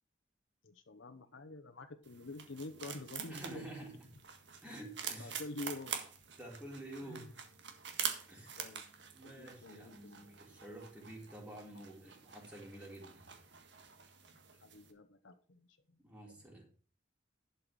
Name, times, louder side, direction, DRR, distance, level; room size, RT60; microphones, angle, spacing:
voice 1, 0.6-3.6 5.2-6.0 7.0-7.3 8.6-8.8 9.2-10.2 11.7-12.1 14.5-15.8 16.3-16.4, left 2 dB, 85° left, 0.9 m, -48 dB
sound 1, 2.0-14.9, right 7 dB, 65° right, 1.7 m, -46 dB
voice 2, 3.3-4.0 4.6-5.4 6.4-7.3 8.3-8.6 9.1-13.3 16.0-16.7, right 1 dB, 5° right, 3.9 m, -49 dB
11.5 x 5.7 x 6.2 m
head